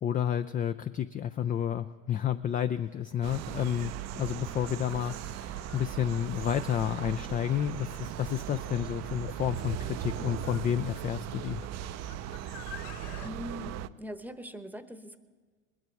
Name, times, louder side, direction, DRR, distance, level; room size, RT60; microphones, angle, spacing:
voice 1, 0.0-11.6, left 10 dB, 20° left, 10 dB, 0.3 m, -31 dB
sound 1, 2.7-10.7, right 6 dB, 80° right, 1.6 m, -53 dB
sound 2, 3.2-13.9, right 11 dB, 40° right, 0.5 m, -38 dB
sound 3, 4.4-13.3, left 11 dB, 60° left, 1.0 m, -51 dB
voice 2, 13.2-15.2, left 1 dB, 5° right, 11 dB, 0.9 m, -41 dB
20.5 x 9.9 x 4.5 m, 1.5 s
hypercardioid pair, 75°, 42 cm